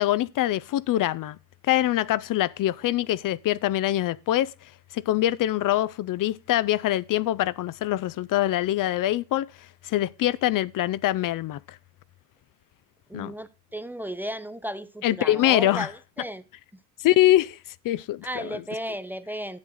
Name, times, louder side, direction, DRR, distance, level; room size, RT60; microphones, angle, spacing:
voice 1, 0.0-1.4 1.6-4.5 4.9-9.5 9.8-11.8 13.1-13.3 15.0-15.9 17.0-17.6 17.8-18.6, left 14 dB, 70° left, 0.5 m, -24 dB
voice 2, 13.1-16.4 18.2-19.6, equal, 5° right, 0.5 m, -34 dB
10.5 x 8.0 x 3.7 m
cardioid pair, 155°, 34 cm